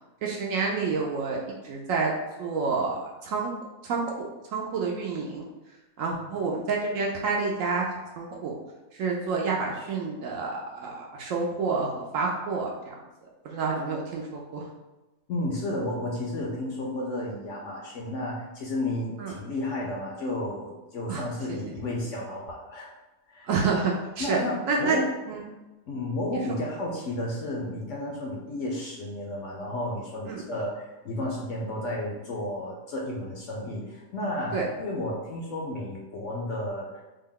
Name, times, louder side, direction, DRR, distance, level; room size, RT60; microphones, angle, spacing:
voice 1, 0.2-2.1 2.4-3.5 3.8-4.0 4.5-5.5 6.0-7.8 8.2-8.6 9.0-11.9 12.1-12.9 13.4-14.6 19.2-19.3 21.1-21.2 21.5-21.6 23.5-24.4 24.6-25.0 25.3-25.4 30.3-30.4 34.5-34.7, right 4 dB, 70° right, -1 dB, 0.8 m, -28 dB
voice 2, 15.3-22.9 23.3-23.6 24.2-25.1 25.9-37.0, left 1 dB, 65° left, -2 dB, 0.8 m, -32 dB
3.5 x 2.2 x 3.6 m, 1.1 s
omnidirectional pair, 1.6 m